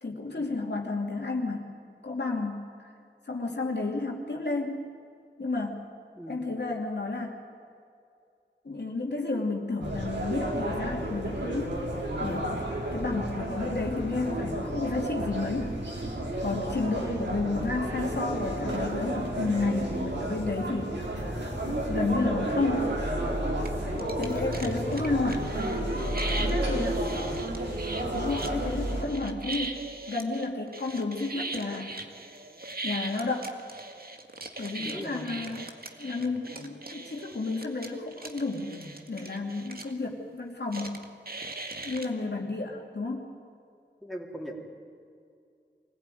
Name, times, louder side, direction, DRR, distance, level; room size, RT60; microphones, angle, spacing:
voice 1, 0.0-1.7 2.0-2.7 3.3-4.8 5.4-5.8 6.3-7.4 8.6-11.8 12.2-12.6 12.9-15.7 16.4-21.0 21.6-23.0 24.2-25.5 26.3-27.0 28.1-31.9 32.8-33.5 34.6-35.6 36.0-41.0 41.8-43.3, left 3 dB, 65° left, 0 dB, 2.7 m, -31 dB
sound 1, 9.8-29.0, right 1 dB, 70° right, 4.3 m, -31 dB
voice 2, 16.8-17.2 23.8-24.2 26.6-27.2 34.8-35.3 44.0-44.5, equal, ahead, -2 dB, 3.7 m, -41 dB
sound 2, 23.7-23.8 24.0-39.9 40.7-42.1, right 2 dB, 55° right, 1.9 m, -40 dB
24.5 x 16.0 x 9.3 m, 2.5 s
wide cardioid pair, 60°, 19 cm